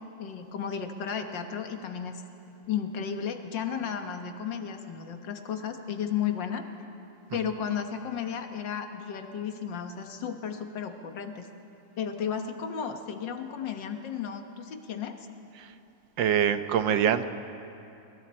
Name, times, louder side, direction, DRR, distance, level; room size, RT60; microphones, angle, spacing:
voice 1, 0.2-2.2 2.7-6.6 7.3-11.4 12.0-15.1, left 7 dB, 80° left, 6 dB, 2.0 m, -33 dB
voice 2, 16.2-17.3, right 9 dB, 90° right, 10 dB, 1.6 m, -24 dB
25.0 x 24.5 x 4.4 m, 2.8 s
omnidirectional pair, 1.9 m